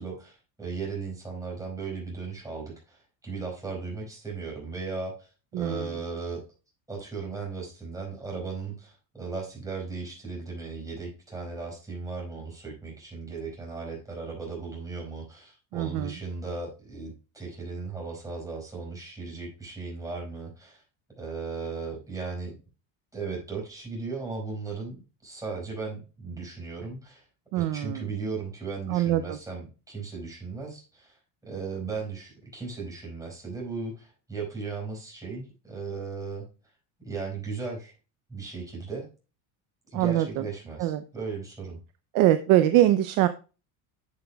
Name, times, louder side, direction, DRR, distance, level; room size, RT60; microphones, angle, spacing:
voice 1, 0.0-6.4 6.9-20.8 21.2-22.5 23.1-27.2 27.5-31.2 31.4-36.4 37.0-37.9 38.3-39.1 39.9-41.8, right 4 dB, 10° right, -3 dB, 4.7 m, -36 dB
voice 2, 5.5-6.0 15.7-16.2 27.5-28.1 28.9-29.4 39.9-40.5 40.8-41.0 42.1-43.3, right 13 dB, 50° right, 10 dB, 0.6 m, -23 dB
10.5 x 7.0 x 2.3 m, 0.32 s
cardioid pair, 150°, 44 cm